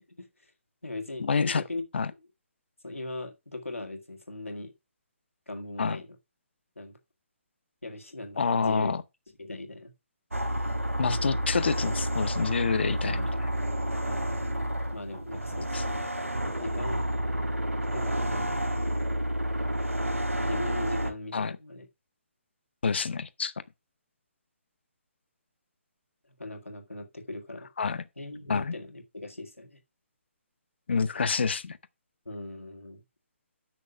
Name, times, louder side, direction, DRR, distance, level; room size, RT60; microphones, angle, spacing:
voice 1, 0.2-0.5 0.8-1.9 2.8-4.7 5.5-6.2 6.8-7.0 7.8-8.9 9.4-9.9 14.1-16.3 16.6-17.1 17.9-18.5 20.5-21.9 26.4-27.7 28.2-29.8 32.3-33.0, left 2 dB, 80° left, 2.0 m, -39 dB
voice 2, 1.2-1.6 1.9-2.1 5.8-6.0 8.4-9.0 11.0-13.5 15.7-15.8 21.3-21.5 22.8-23.5 27.8-28.0 28.5-28.7 30.9-31.8, left 5 dB, 55° left, 0.7 m, -27 dB
sound 1, 10.3-21.1, equal, 85° right, 1.5 m, -30 dB
7.0 x 6.3 x 5.8 m
figure-of-eight pair, 135°, 7 cm